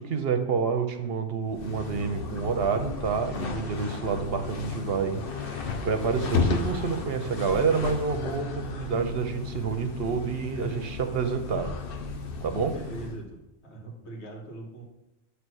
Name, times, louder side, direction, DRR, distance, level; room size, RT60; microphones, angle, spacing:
voice 1, 0.0-11.8 12.4-12.7, right 5 dB, 60° right, 7 dB, 0.8 m, -28 dB
sound 1, 1.5-13.2, left 5 dB, 55° left, 0.9 m, -34 dB
sound 2, 2.0-8.1, left 1 dB, 35° left, 1.3 m, -51 dB
voice 2, 12.7-14.8, right 2 dB, 70° left, -1 dB, 1.8 m, -41 dB
7.8 x 3.2 x 6.2 m, 1.0 s
omnidirectional pair, 1.2 m